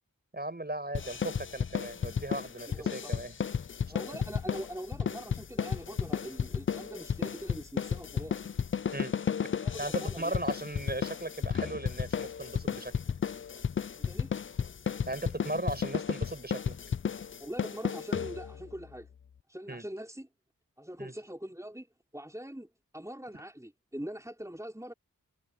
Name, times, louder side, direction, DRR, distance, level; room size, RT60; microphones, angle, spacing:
voice 1, 0.3-3.3 8.9-9.1 9.8-12.9 14.8-16.8 19.7-19.8 21.0-21.1, right 1 dB, 30° right, 6.5 m, -37 dB
sound 1, 0.9-18.7, left 7 dB, 40° left, 0.4 m, -33 dB
voice 2, 2.7-3.3 3.9-8.4 9.6-10.4 14.1-14.3 17.4-19.1 19.5-20.3 20.8-22.7 22.9-24.9, equal, 10° right, 5.3 m, -42 dB
wide cardioid pair, 45°, 34 cm